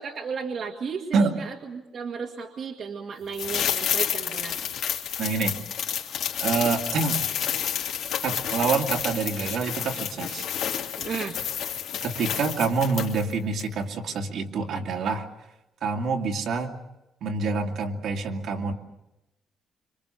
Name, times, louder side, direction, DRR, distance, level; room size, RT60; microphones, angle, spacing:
voice 1, 0.0-4.6 11.0-11.5, right 6 dB, 45° right, 1 dB, 1.8 m, -34 dB
sound 1, 3.3-13.3 13.6-13.7, left 9 dB, 80° left, 2.9 m, -30 dB
voice 2, 5.2-5.6 6.4-7.2 8.2-10.5 12.0-15.3 15.8-16.7 17.2-18.7, right 4 dB, 60° right, 2 dB, 2.4 m, -26 dB
26.5 x 25.5 x 6.9 m, 0.96 s
cardioid pair, 160°, 0 cm